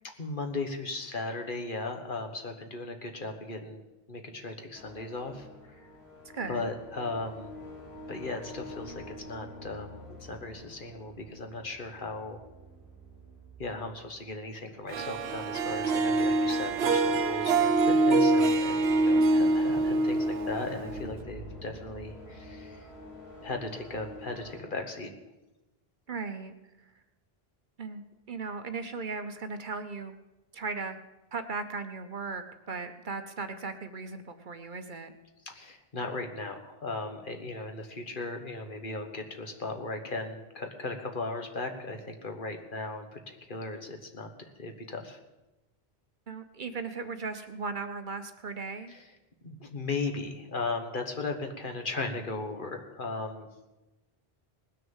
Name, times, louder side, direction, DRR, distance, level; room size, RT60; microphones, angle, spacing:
voice 1, 0.2-3.8 4.1-5.9 6.5-7.5 8.1-12.5 13.6-22.9 23.4-25.1 35.4-45.2 48.9-49.1 49.4-53.5, left 3 dB, 55° left, 5 dB, 1.4 m, -37 dB
sound 1, 4.7-24.6, left 1 dB, 15° left, 4.9 m, -47 dB
voice 2, 6.3-6.7 19.1-19.5 26.1-26.5 27.8-28.0 28.3-30.2 30.5-31.0 31.3-35.1 46.3-48.9, right 4 dB, 55° right, 9 dB, 0.9 m, -37 dB
Harp, 14.9-21.2, right 2 dB, 80° right, 1.0 m, -25 dB
19.5 x 6.6 x 7.2 m, 1.1 s
omnidirectional pair, 1.1 m